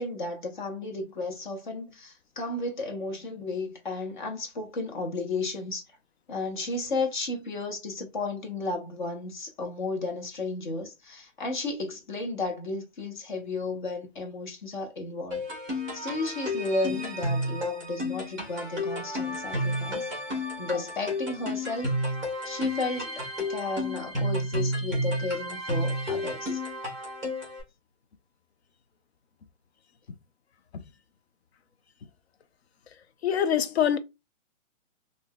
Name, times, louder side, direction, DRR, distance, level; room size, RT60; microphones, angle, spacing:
voice 1, 0.0-5.8 6.3-15.4 15.9-21.9 22.4-26.6, left 3 dB, 40° left, 0.9 m, -33 dB
sound 1, 15.3-27.6, left 1 dB, ahead, 1.2 m, -31 dB
voice 2, 33.2-34.0, left 9 dB, 55° left, 0.5 m, -24 dB
3.7 x 2.7 x 2.2 m
hypercardioid pair, 170°, 38 cm